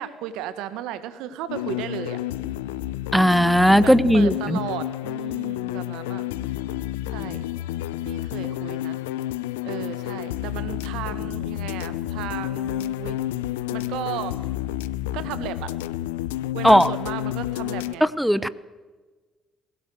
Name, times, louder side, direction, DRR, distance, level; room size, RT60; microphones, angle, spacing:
voice 1, 0.0-2.2 3.8-6.2 7.1-7.4 8.0-9.0 9.6-13.2 13.7-14.4 15.1-15.7 16.5-18.1 18.3-18.5, right 11 dB, 75° right, 13 dB, 1.6 m, -34 dB
sound 1, 1.5-17.9, left 14 dB, 85° left, 0.6 m, -30 dB
voice 2, 3.1-4.3 16.6-16.9 18.2-18.5, equal, ahead, 17 dB, 0.9 m, -16 dB
21.0 x 17.5 x 7.9 m, 1.3 s
hypercardioid pair, 50°, 0 cm